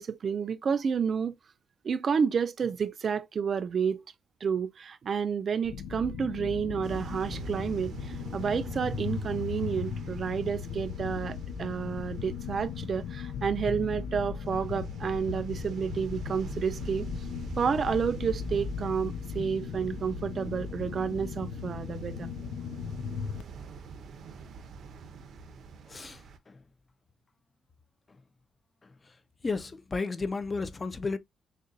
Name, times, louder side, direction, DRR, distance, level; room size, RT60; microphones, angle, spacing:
voice 1, 0.0-1.3 1.8-4.0 4.4-17.1 17.6-22.3, right 6 dB, 40° right, 0.4 m, -30 dB
sound 1, 5.6-23.4, left 7 dB, 80° left, 0.4 m, -37 dB
sound 2, 6.8-26.4, right 5 dB, 60° right, 0.8 m, -44 dB
voice 2, 25.9-26.2 26.5-26.6 29.4-31.2, left 4 dB, 20° left, 0.4 m, -32 dB
6.5 x 2.2 x 2.6 m
cardioid pair, 170°, 0 cm